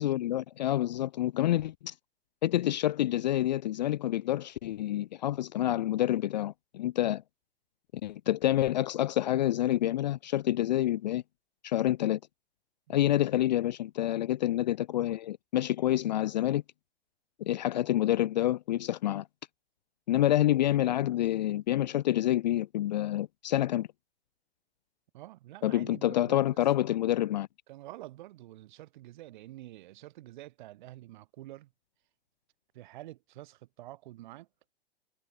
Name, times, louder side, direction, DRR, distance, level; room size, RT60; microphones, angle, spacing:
voice 1, 0.0-1.9 2.4-7.2 8.0-11.2 11.6-12.2 12.9-16.6 17.4-19.3 20.1-23.9 25.6-27.5, left 13 dB, 45° left, 0.4 m, -28 dB
voice 2, 25.1-26.6 26.9-27.0 27.7-31.7 32.7-34.5, right 16 dB, 50° right, 5.7 m, -48 dB
figure-of-eight pair, 115°, 31 cm